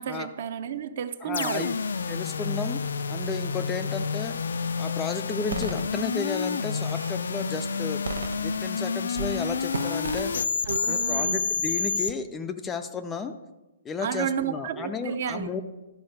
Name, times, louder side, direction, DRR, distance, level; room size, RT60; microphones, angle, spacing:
voice 1, 0.0-1.7 10.7-11.5 14.0-15.5, right 8 dB, 50° right, 11 dB, 0.6 m, -31 dB
voice 2, 1.2-1.7 2.1-2.8 3.1-4.4 4.8-10.5 10.9-13.3 13.8-15.6, left 5 dB, 10° left, 8 dB, 0.4 m, -33 dB
sound 1, 1.3-12.1, left 5 dB, 90° left, 0.5 m, -29 dB
sound 2, 5.5-5.8 6.5-7.2 8.1-8.8 9.1-9.4 9.7-10.3, right 4 dB, 90° right, 1.0 m, -34 dB
11.5 x 4.7 x 6.5 m, 1.1 s
hypercardioid pair, 165°, 0 cm